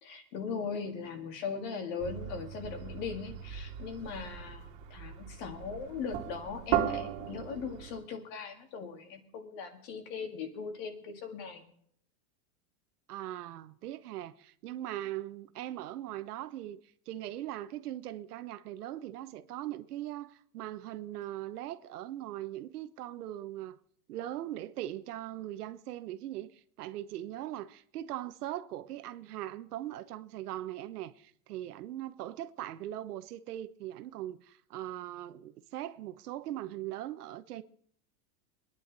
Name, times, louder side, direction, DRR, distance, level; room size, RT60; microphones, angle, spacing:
voice 1, 0.0-11.7, left 5 dB, 35° left, 2.1 m, -39 dB
sound 1, 2.0-8.0, right 10 dB, 35° right, 2.6 m, -37 dB
voice 2, 13.1-16.8 17.1-23.8 24.1-37.6, right 13 dB, 80° right, 1.1 m, -40 dB
23.5 x 10.5 x 4.1 m
supercardioid pair, 175°, 45 cm